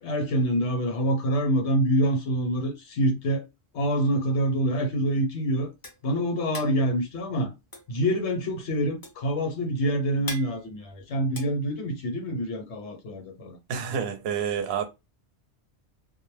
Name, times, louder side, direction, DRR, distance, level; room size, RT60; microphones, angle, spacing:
voice 1, 0.0-3.4 3.7-5.7 6.0-7.5 7.9-13.6, equal, 80° left, 1.1 m, -26 dB
sound 1, 5.3-12.4, left 2 dB, 25° left, 0.5 m, -43 dB
voice 2, 13.7-14.8, right 7 dB, 65° right, 0.7 m, -28 dB
2.3 x 2.0 x 3.1 m
omnidirectional pair, 1.2 m